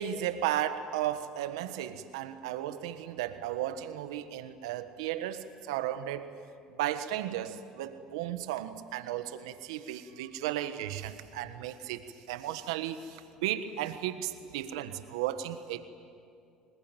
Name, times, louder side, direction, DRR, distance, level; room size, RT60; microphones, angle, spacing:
voice 1, 0.0-6.3 6.8-12.0 12.3-15.8, right 12 dB, 90° right, 11 dB, 1.4 m, -35 dB
27.0 x 21.0 x 9.2 m, 2.4 s
supercardioid pair, 80°, 3 cm